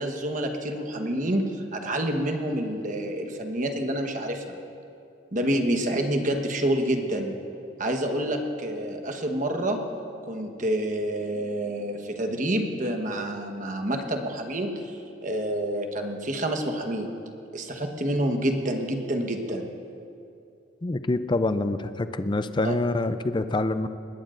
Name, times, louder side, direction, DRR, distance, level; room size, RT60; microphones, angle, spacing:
voice 1, 0.0-4.6 5.3-7.4 7.8-9.8 10.3-17.1 17.5-19.6 22.6-22.8, right 1 dB, 45° right, 3 dB, 1.2 m, -28 dB
voice 2, 20.8-23.9, left 2 dB, 25° left, 11 dB, 0.4 m, -26 dB
21.0 x 18.0 x 2.6 m, 2.7 s
head